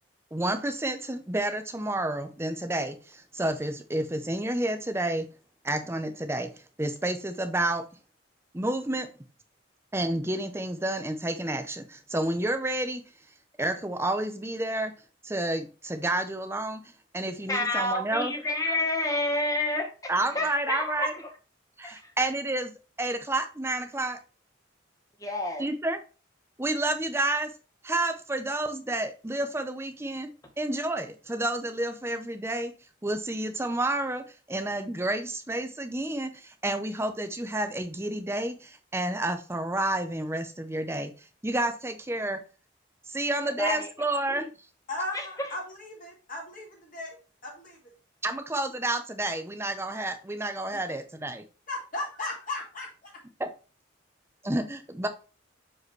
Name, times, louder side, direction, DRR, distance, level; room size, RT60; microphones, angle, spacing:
voice 1, 0.3-5.3 5.6-6.5 6.8-7.8 8.5-9.1 9.9-13.0 13.6-14.9 15.2-16.8 17.1-18.3 20.1-21.1 21.8-22.7 23.0-24.2 25.6-26.0 26.6-27.5 27.8-30.3 30.6-32.7 33.0-42.4 43.1-44.5 48.2-51.4 53.4-53.5 54.4-55.1, right 1 dB, 15° right, 8 dB, 0.6 m, -30 dB
voice 2, 17.5-19.9 20.3-21.1 21.8-22.1 25.2-25.6 43.4-43.9 44.3-44.4 45.1-45.5, left 2 dB, 20° left, 3 dB, 1.2 m, -29 dB
voice 3, 44.9-47.8 51.7-53.1, left 2 dB, 45° left, -2 dB, 2.1 m, -36 dB
6.1 x 4.9 x 3.2 m, 0.35 s
head